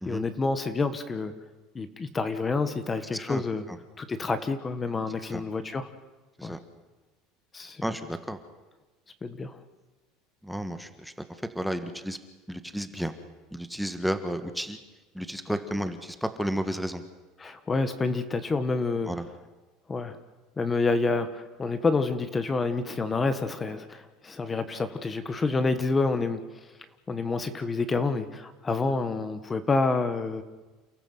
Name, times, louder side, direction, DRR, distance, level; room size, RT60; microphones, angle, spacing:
voice 1, 0.0-1.3 1.7-3.6 4.0-5.9 6.4-6.6 7.5-7.8 9.2-9.6 15.5-15.6 17.4-19.1 19.9-20.2 20.6-26.4 27.1-30.4, left 3 dB, 20° left, 11 dB, 1.5 m, -28 dB
voice 2, 7.8-8.4 10.4-11.1 11.5-12.2 12.5-13.1 13.5-14.8 15.1-17.0 19.1-19.3, equal, ahead, 8 dB, 1.4 m, -32 dB
29.0 x 15.0 x 8.1 m, 1.2 s
cardioid pair, 145°, 0 cm